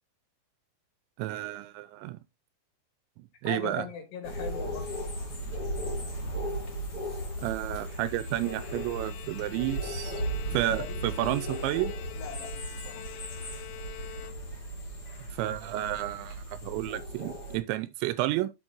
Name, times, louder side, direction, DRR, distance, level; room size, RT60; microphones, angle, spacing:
voice 1, 1.2-2.2 3.4-3.9 7.4-10.2 10.5-11.9 15.3-18.5, right 15 dB, 85° right, 2.7 m, -31 dB
voice 2, 3.5-4.9 10.5-11.1 12.2-13.2, left 7 dB, 65° left, 4.0 m, -40 dB
sound 1, 4.2-17.6, right 1 dB, 45° left, 1.3 m, -36 dB
Bowed string instrument, 7.8-14.8, left 12 dB, 85° left, 3.0 m, -47 dB
11.0 x 6.3 x 2.9 m
omnidirectional pair, 5.4 m